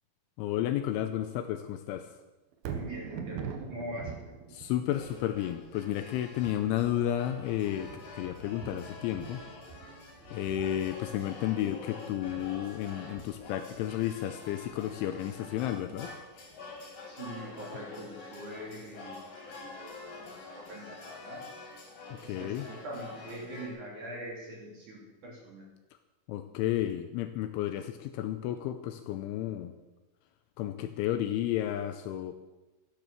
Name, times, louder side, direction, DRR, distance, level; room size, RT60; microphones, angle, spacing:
voice 1, 0.4-2.1 4.5-9.4 10.3-16.1 22.1-22.7 26.3-29.8 30.6-32.3, left 12 dB, 80° left, 8 dB, 2.9 m, -32 dB
Thunder, 2.5-16.7 17.2-17.3, right 8 dB, 85° right, 2.1 m, -46 dB
voice 2, 2.6-4.1 17.1-19.2 19.4-19.7 20.2-21.4 22.2-25.6, equal, 45° right, -2 dB, 3.6 m, -42 dB
sound 1, 4.9-23.7, left 3 dB, 50° left, 3.9 m, -47 dB
13.5 x 11.0 x 6.8 m, 1.1 s
omnidirectional pair, 5.9 m